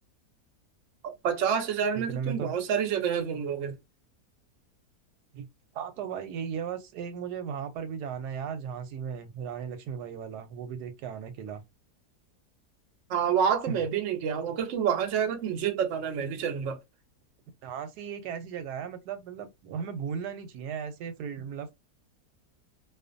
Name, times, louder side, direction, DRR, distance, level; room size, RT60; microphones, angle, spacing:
voice 1, 1.2-3.8 13.1-16.8, right 7 dB, 60° right, 0.9 m, -28 dB
voice 2, 1.9-2.5 5.3-5.5 5.7-11.6 13.7-13.8 17.6-21.7, right 7 dB, 90° right, 1.2 m, -36 dB
2.5 x 2.4 x 2.5 m
omnidirectional pair, 1.7 m